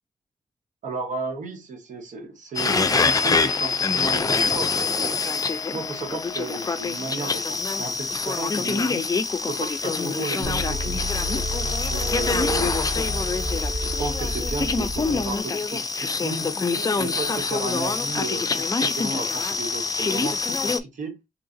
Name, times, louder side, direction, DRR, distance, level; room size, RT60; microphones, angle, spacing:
voice 1, 0.8-5.2 5.7-9.0 9.5-11.0 11.6-12.9 13.5-16.5 17.0-21.2, right 3 dB, 80° right, 1.0 m, -34 dB
sound 1, 2.6-20.8, left 4 dB, 30° left, 0.4 m, -25 dB
sound 2, 10.4-15.4, equal, 50° right, 1.1 m, -30 dB
3.2 x 2.5 x 3.7 m
cardioid pair, 60°, 13 cm